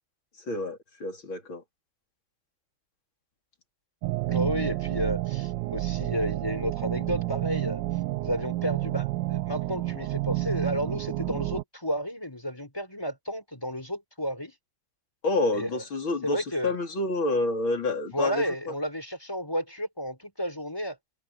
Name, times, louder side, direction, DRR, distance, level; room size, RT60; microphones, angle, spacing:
voice 1, 0.5-1.6 15.2-18.4, left 2 dB, 70° left, 4.4 m, -28 dB
sound 1, 4.0-11.6, right 17 dB, 75° right, 1.1 m, -30 dB
voice 2, 4.3-7.8 8.2-14.5 15.5-15.8 16.2-16.8 18.1-21.0, equal, 10° left, 4.9 m, -32 dB
omnidirectional pair, 2.3 m